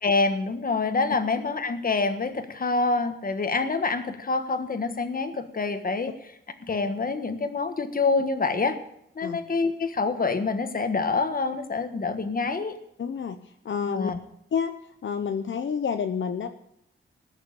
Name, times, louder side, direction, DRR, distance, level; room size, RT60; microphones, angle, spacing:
voice 1, 0.0-6.3 6.6-8.8 9.1-12.8 13.9-14.2, left 3 dB, 45° left, 8 dB, 1.5 m, -26 dB
voice 2, 13.0-13.4 13.6-14.1 14.5-14.7 15.0-16.5, left 7 dB, 65° left, 7 dB, 0.8 m, -28 dB
19.5 x 6.6 x 8.8 m, 0.76 s
wide cardioid pair, 145°, 21 cm